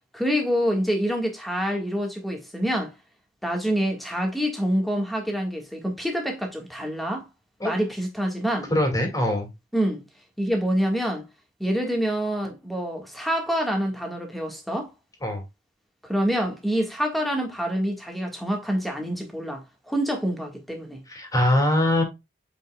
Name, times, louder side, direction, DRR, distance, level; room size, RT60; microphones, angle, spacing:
voice 1, 0.1-2.9 3.4-7.3 7.6-8.7 9.7-10.0 10.4-11.2 11.6-14.9 16.0-21.0, equal, ahead, 1.7 m, -26 dB
voice 2, 8.7-9.5 15.2-15.4 21.1-22.0, left 1 dB, 20° left, 2.4 m, -22 dB
7.5 x 5.3 x 2.4 m
head